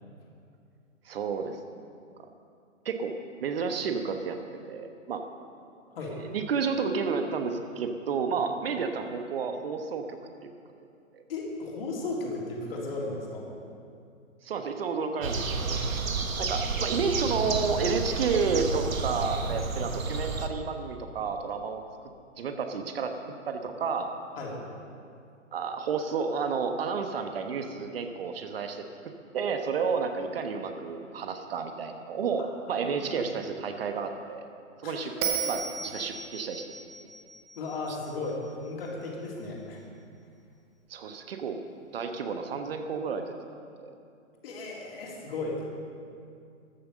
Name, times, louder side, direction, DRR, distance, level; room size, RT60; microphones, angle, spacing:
voice 1, 1.0-1.6 2.8-3.2 3.4-4.4 4.7-5.2 6.3-10.5 11.1-11.2 14.4-16.1 16.4-21.8 22.4-23.2 23.5-24.1 25.5-34.4 34.8-35.1 35.5-36.8 40.9-41.6 41.9-43.4 43.8-43.9, right 5 dB, 45° right, 6 dB, 1.2 m, -31 dB
voice 2, 11.3-13.5 24.4-24.6 32.7-32.9 34.8-35.6 37.6-39.8 44.4-45.6, left 3 dB, 45° left, -2 dB, 3.6 m, -35 dB
sound 1, 15.2-20.5, right 3 dB, 90° right, 1.4 m, -30 dB
Bell, 35.2-38.5, right 7 dB, 10° right, 0.5 m, -35 dB
14.0 x 9.4 x 6.7 m, 2.4 s
hypercardioid pair, 140°, 39 cm